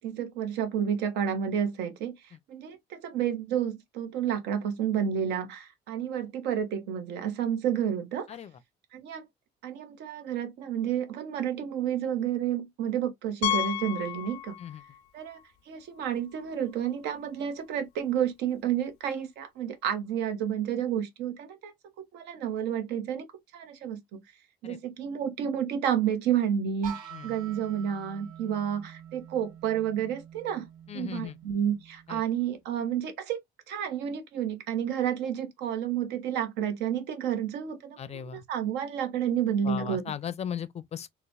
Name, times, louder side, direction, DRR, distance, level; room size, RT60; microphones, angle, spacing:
voice 1, 0.0-2.2 2.5-8.3 8.9-9.3 9.6-14.6 15.1-15.4 15.7-21.7 22.1-23.3 23.5-24.2 24.6-30.7 30.9-40.1, right 9 dB, 85° right, 0.9 m, -30 dB
Piano, 13.4-15.0 15.3-15.4 16.0-16.1 16.4-16.5 18.5-18.6, left 12 dB, 85° left, 0.5 m, -32 dB
sound 1, 26.8-32.6, right 9 dB, 55° right, 1.3 m, -47 dB
voice 2, 30.9-31.3 32.1-32.2 38.0-38.4 39.6-41.1, left 8 dB, 40° left, 0.5 m, -37 dB
3.9 x 2.2 x 2.5 m
cardioid pair, 110°, 17 cm